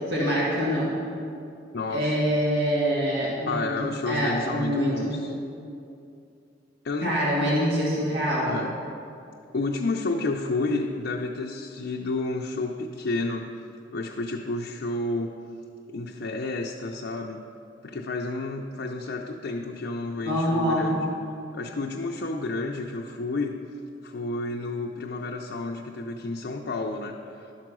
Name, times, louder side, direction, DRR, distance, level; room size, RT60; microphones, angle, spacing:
voice 1, 0.1-0.9 1.9-5.1 7.0-8.5 20.2-21.0, equal, 70° right, -6 dB, 2.2 m, -25 dB
voice 2, 1.7-2.2 3.5-5.4 6.8-7.2 8.5-8.8 9.5-13.5 13.9-15.4 15.9-17.4 17.8-21.1 21.5-23.6 24.0-27.2, left 2 dB, 60° left, 0 dB, 0.5 m, -30 dB
11.5 x 4.6 x 6.1 m, 2.6 s
head